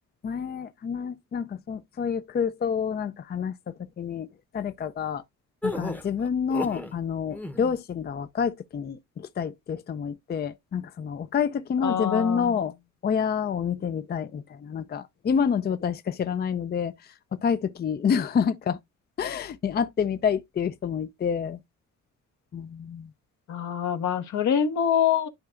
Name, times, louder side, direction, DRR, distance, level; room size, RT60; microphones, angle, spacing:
voice 1, 0.2-4.3 4.5-5.2 5.6-12.7 13.0-17.1 17.4-18.8 19.2-21.6 22.5-23.1, left 7 dB, 35° left, 0.5 m, -28 dB
gasps small crowd, 5.6-6.9 7.3-7.8, left 1 dB, 5° left, 0.8 m, -33 dB
voice 2, 11.8-12.6 23.5-25.3, left 8 dB, 70° left, 1.2 m, -25 dB
11.5 x 4.5 x 2.4 m
cardioid pair, 90°, 30 cm